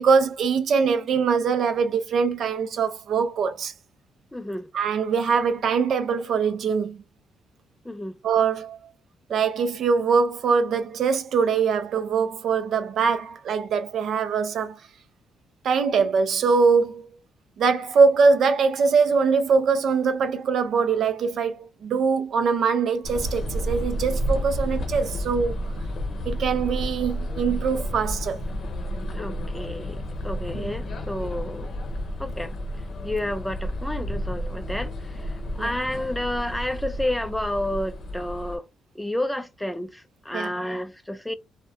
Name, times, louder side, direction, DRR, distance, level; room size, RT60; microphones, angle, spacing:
voice 1, 0.0-3.7 4.7-7.0 8.2-8.8 9.3-14.8 15.6-17.1 17.6-25.5 26.3-28.4 30.5-30.7 35.6-35.7 40.3-40.5, right 5 dB, 65° right, 0.4 m, -22 dB
voice 2, 4.3-4.7 7.8-8.2 29.1-31.7 32.2-32.6 33.0-38.7 39.0-41.3, left 1 dB, 5° left, 0.3 m, -30 dB
sound 1, 23.0-38.6, equal, 55° left, 0.6 m, -31 dB
2.3 x 2.1 x 2.6 m
cardioid pair, 90°, 0 cm